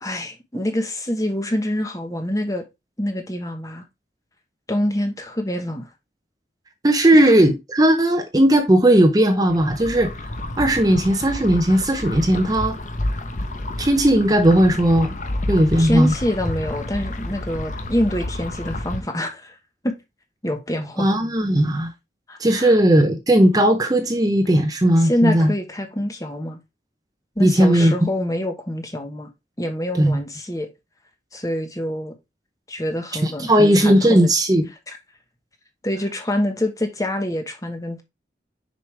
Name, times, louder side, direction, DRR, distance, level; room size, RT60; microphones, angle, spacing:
voice 1, 0.0-2.6 3.0-3.8 4.7-5.9 7.2-7.3 15.8-19.6 19.8-19.9 20.4-21.1 22.3-22.7 25.0-26.6 27.4-29.3 29.6-30.7 31.3-32.1 32.7-34.3 35.8-38.0, left 1 dB, 20° left, 1.1 m, -26 dB
voice 2, 6.8-10.1 10.6-12.8 13.8-15.1 15.5-16.1 21.0-21.9 22.4-25.5 27.4-27.9 29.9-30.2 33.2-34.7, right 1 dB, 20° right, 0.7 m, -17 dB
sound 1, 9.5-19.0, left 1 dB, 45° left, 0.8 m, -30 dB
6.7 x 5.2 x 3.3 m
head